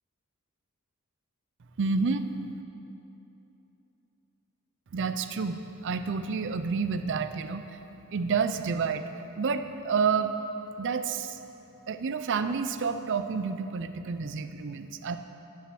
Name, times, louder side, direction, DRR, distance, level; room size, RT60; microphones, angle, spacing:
voice 1, 1.8-2.3 4.9-7.8 8.1-9.0 9.4-10.3 10.8-11.4 11.9-15.2, right 5 dB, 55° right, 10 dB, 0.5 m, -29 dB
10.0 x 6.8 x 7.7 m, 2.9 s
head